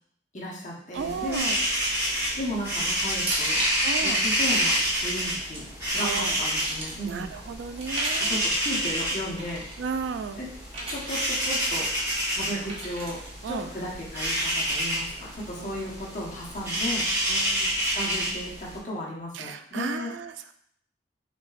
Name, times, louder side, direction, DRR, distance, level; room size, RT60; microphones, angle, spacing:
voice 1, 0.3-1.5 2.4-3.6 4.0-7.3 8.2-9.6 10.4-10.5 10.9-11.9 12.3-13.2 13.5-17.1 17.9-20.1, left 1 dB, 40° left, -5 dB, 1.2 m, -35 dB
voice 2, 0.9-1.6 3.8-4.2 6.0-6.4 7.0-8.4 9.8-10.4 13.4-13.7 15.6-15.9 17.3-17.8 19.3-20.3, right 5 dB, 70° right, 9 dB, 0.3 m, -34 dB
sound 1, 1.0-18.8, equal, 15° right, 1.2 m, -28 dB
sound 2, 2.0-2.3 3.2-3.9 5.2-5.6 6.2-6.9 7.8-8.5 9.4-9.7 10.7-11.1 12.7-13.3, right 2 dB, 30° right, 0.8 m, -34 dB
6.0 x 3.0 x 2.5 m, 0.67 s
head